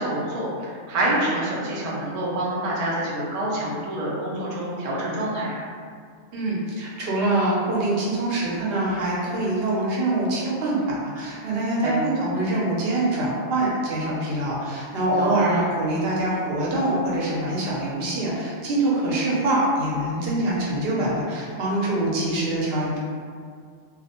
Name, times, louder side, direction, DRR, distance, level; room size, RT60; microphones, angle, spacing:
voice 1, 0.0-5.6 11.8-12.0 15.2-15.3, right 1 dB, 85° right, -5 dB, 0.3 m, -27 dB
voice 2, 6.3-23.0, right 1 dB, 60° right, -5 dB, 0.7 m, -24 dB
2.3 x 2.1 x 2.8 m, 2.1 s
omnidirectional pair, 1.3 m